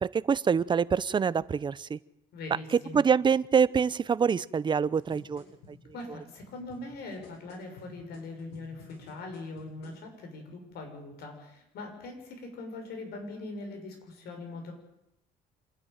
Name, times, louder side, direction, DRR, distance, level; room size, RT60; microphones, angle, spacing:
voice 1, 0.0-2.0 2.9-5.4, right 6 dB, 25° right, 18 dB, 0.6 m, -25 dB
voice 2, 2.3-3.0 5.9-14.7, left 2 dB, 70° left, 4 dB, 6.4 m, -41 dB
sound 1, 4.8-10.0 10.7-10.8, left 3 dB, 85° left, 7.5 m, -54 dB
27.0 x 10.5 x 9.2 m, 0.83 s
cardioid pair, 110°, 17 cm